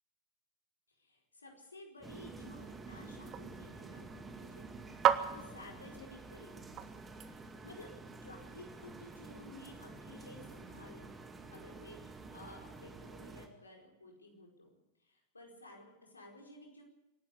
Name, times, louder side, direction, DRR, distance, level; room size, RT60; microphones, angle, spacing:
voice 1, 1.0-4.1 4.3-4.7 5.0-8.0 8.2-11.1 11.5-14.7 15.0-16.8, left 2 dB, 80° left, 1 dB, 4.8 m, -54 dB
sound 1, 2.0-13.5, right 3 dB, 15° right, 2.1 m, -50 dB
sound 2, 2.0-7.8, right 10 dB, 30° right, 1.2 m, -38 dB
26.5 x 12.0 x 8.3 m, 0.97 s
figure-of-eight pair, 90°, 0 cm